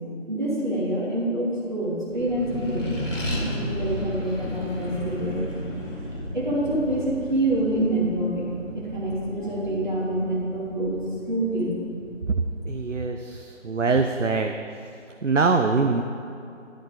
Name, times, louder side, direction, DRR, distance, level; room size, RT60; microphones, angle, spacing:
voice 1, 0.3-5.4 6.3-11.8, right 1 dB, 40° right, -8 dB, 2.3 m, -26 dB
Accelerating revving vroom, 2.1-13.0, left 1 dB, 80° left, 2.7 m, -34 dB
voice 2, 12.7-14.5 15.2-16.0, right 4 dB, 75° right, 5 dB, 0.7 m, -23 dB
10.5 x 7.9 x 5.1 m, 2.6 s
figure-of-eight pair, 175°, 38 cm